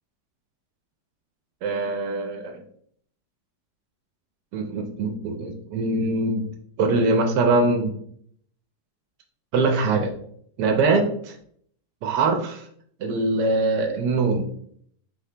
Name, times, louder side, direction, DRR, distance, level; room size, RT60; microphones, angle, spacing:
voice 1, 1.6-2.6 4.5-6.5 6.8-7.9 9.5-10.1 10.6-11.4 12.0-12.6 13.0-14.5, right 3 dB, 80° right, 3 dB, 1.2 m, -23 dB
5.3 x 2.8 x 3.3 m, 0.64 s
omnidirectional pair, 1.9 m